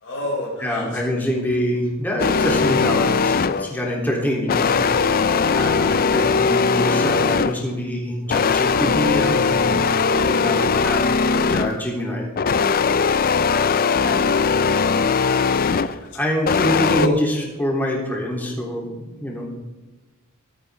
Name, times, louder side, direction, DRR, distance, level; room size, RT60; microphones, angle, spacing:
voice 1, 0.0-0.9 1.1-1.3 14.1-15.1 17.0-17.1, equal, 60° left, -4 dB, 5.8 m, -30 dB
voice 2, 0.6-12.3 14.0-14.2 15.6-19.5, equal, 10° left, -3 dB, 3.5 m, -26 dB
sound 1, 2.2-3.8 4.5-7.7 8.3-11.8 12.4-16.0 16.4-17.1, left 5 dB, 45° left, 0.5 m, -19 dB
23.0 x 9.5 x 3.8 m, 1.1 s
head